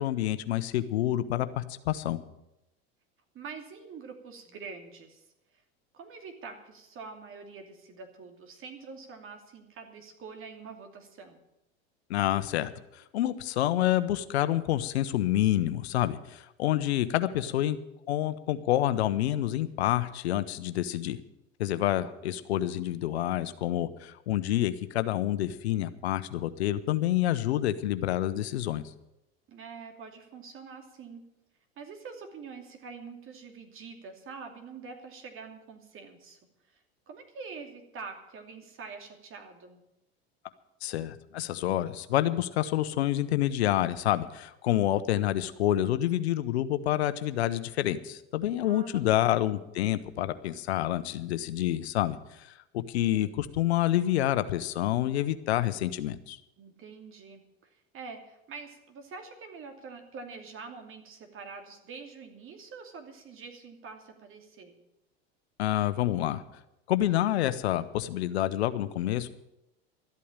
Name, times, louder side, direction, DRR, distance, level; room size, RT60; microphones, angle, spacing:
voice 1, 0.0-2.2 12.1-17.8 18.1-21.2 21.6-28.8 40.8-52.5 52.9-56.4 65.6-66.4 66.9-69.3, left 13 dB, 85° left, 13 dB, 0.9 m, -28 dB
voice 2, 3.3-5.2 5.9-11.4 17.2-17.6 29.5-31.3 31.8-36.4 36.7-39.8 48.6-49.5 53.1-53.4 56.6-57.4 57.7-64.8, right 5 dB, 40° right, 5 dB, 2.8 m, -45 dB
13.0 x 8.5 x 9.0 m, 0.89 s
hypercardioid pair, 95°, 31 cm